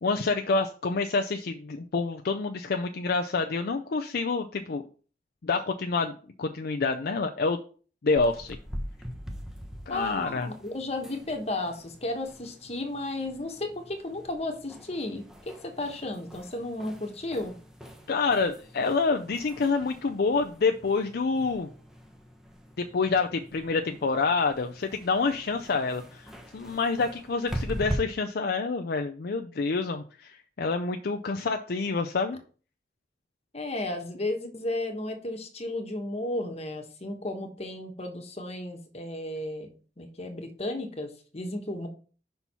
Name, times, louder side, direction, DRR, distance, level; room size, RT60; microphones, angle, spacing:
voice 1, 0.0-4.8 5.4-7.6 8.0-8.6 9.9-10.5 18.1-21.7 22.8-32.4, left 4 dB, 55° left, 5 dB, 0.5 m, -27 dB
sound 1, 8.2-28.0, equal, 5° right, 0.8 m, -42 dB
voice 2, 9.9-17.6 33.5-39.7 40.0-41.9, left 2 dB, 35° left, 4 dB, 1.2 m, -34 dB
5.6 x 4.5 x 5.5 m, 0.40 s
head